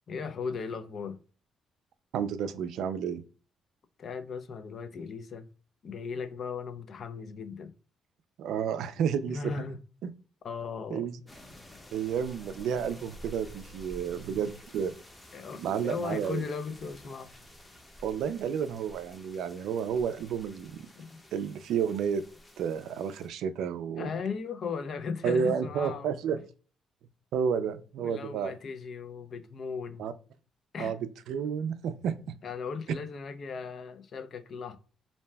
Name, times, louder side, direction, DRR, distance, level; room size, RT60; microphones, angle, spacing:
voice 1, 0.1-1.2 4.0-5.5 5.8-7.7 9.3-9.8 10.4-11.1 15.3-17.3 21.0-21.2 24.0-26.1 28.0-30.1 30.7-30.9 32.4-34.8, left 5 dB, 55° left, 0.4 m, -37 dB
voice 2, 2.1-3.2 8.4-9.5 10.0-10.1 10.9-11.2 11.9-14.9 15.5-16.4 18.0-20.9 21.3-22.2 22.6-24.1 25.2-26.4 27.3-28.5 30.0-30.1 30.8-32.2, right 7 dB, 80° right, 0.3 m, -31 dB
sound 1, 11.3-23.3, equal, 15° left, 0.7 m, -51 dB
2.6 x 2.1 x 3.2 m
cardioid pair, 90°, 0 cm